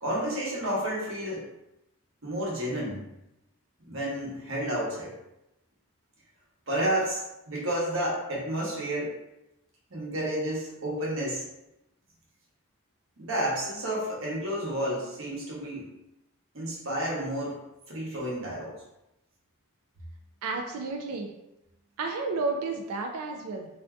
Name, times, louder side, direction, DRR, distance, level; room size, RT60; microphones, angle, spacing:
voice 1, 0.0-1.4 2.2-3.0 3.9-5.1 6.7-9.2 9.9-11.5 13.2-15.9 16.5-17.6 17.9-18.7, right 1 dB, 60° right, -4 dB, 0.9 m, -31 dB
voice 2, 20.4-21.3 22.0-23.7, right 3 dB, 85° right, 3 dB, 0.3 m, -31 dB
3.4 x 2.5 x 2.3 m, 0.89 s
head